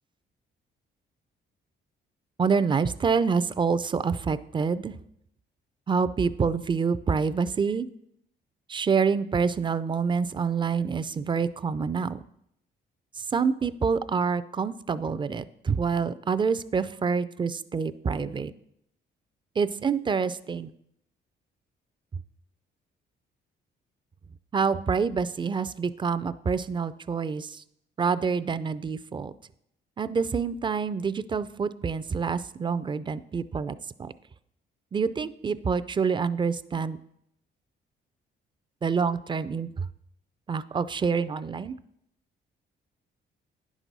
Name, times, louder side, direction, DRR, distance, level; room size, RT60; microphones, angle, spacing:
voice 1, 2.4-4.9 5.9-7.9 8.7-12.2 13.2-18.5 19.6-20.7 24.5-27.6 28.0-29.3 30.0-34.1 34.9-37.0 38.8-39.9 40.5-41.8, right 5 dB, 25° right, 15 dB, 0.4 m, -27 dB
9.8 x 6.1 x 4.0 m, 0.76 s
cardioid pair, 90°, 20 cm